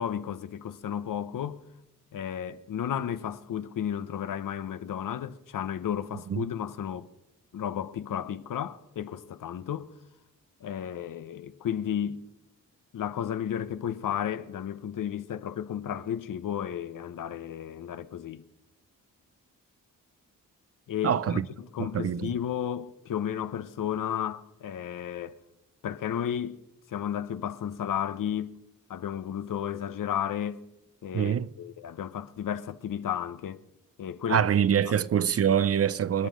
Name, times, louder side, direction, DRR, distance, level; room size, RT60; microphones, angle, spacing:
voice 1, 0.0-1.6 2.1-7.1 7.5-9.9 10.6-12.2 12.9-18.4 20.9-25.4 25.8-26.6 26.9-28.5 28.9-30.6 31.0-33.6 34.0-34.5 36.2-36.3, left 9 dB, 75° left, 0.9 m, -33 dB
voice 2, 21.0-21.5 21.8-22.3 31.1-31.5 34.3-36.3, right 8 dB, 45° right, 0.5 m, -25 dB
26.0 x 9.4 x 5.1 m
wide cardioid pair, 135°, 32 cm